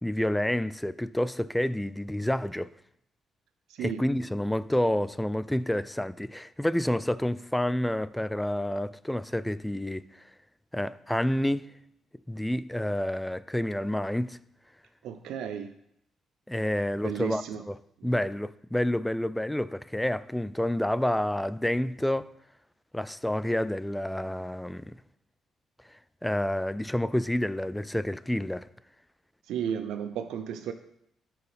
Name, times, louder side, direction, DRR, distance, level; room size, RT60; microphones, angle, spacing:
voice 1, 0.0-2.7 3.8-10.0 10.7-11.7 12.3-14.4 16.5-17.8 18.0-22.3 22.9-24.9 26.2-28.7, left 1 dB, 5° left, 0.3 m, -29 dB
voice 2, 3.7-4.1 15.0-15.7 17.0-17.6 18.0-18.2 29.5-30.7, right 8 dB, 85° right, 0.5 m, -34 dB
12.5 x 4.6 x 3.4 m
cardioid pair, 90°, 0 cm